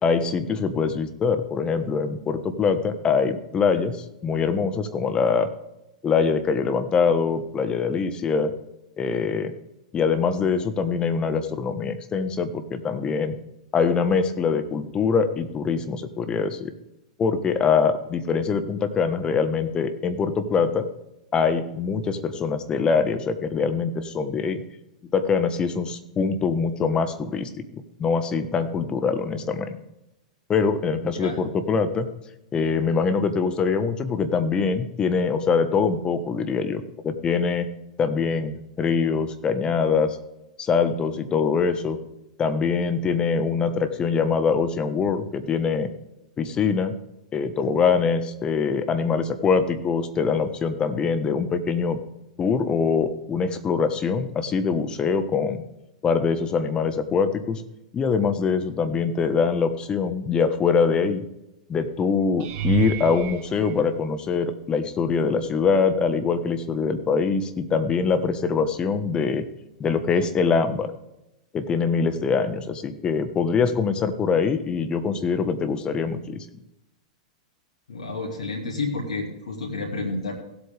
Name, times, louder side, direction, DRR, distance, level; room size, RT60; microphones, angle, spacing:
voice 1, 0.0-5.5 6.0-8.5 9.0-9.5 9.9-13.3 13.7-16.7 17.2-20.9 21.3-24.6 25.1-29.8 30.5-32.1 32.5-37.7 38.0-40.2 40.6-42.0 42.4-45.9 46.4-46.9 47.3-52.0 52.4-55.6 56.0-57.6 57.9-61.2 61.7-69.4 69.8-70.9 71.5-76.4, left 5 dB, 25° left, 9 dB, 1.3 m, -23 dB
sound 1, 62.4-64.7 65.4-65.8 66.2-66.3 70.7-70.8, right 6 dB, 45° right, 1.8 m, -31 dB
voice 2, 77.9-80.3, left 3 dB, 85° left, -1 dB, 2.4 m, -30 dB
17.0 x 8.2 x 3.5 m, 0.91 s
hypercardioid pair, 115°, 4 cm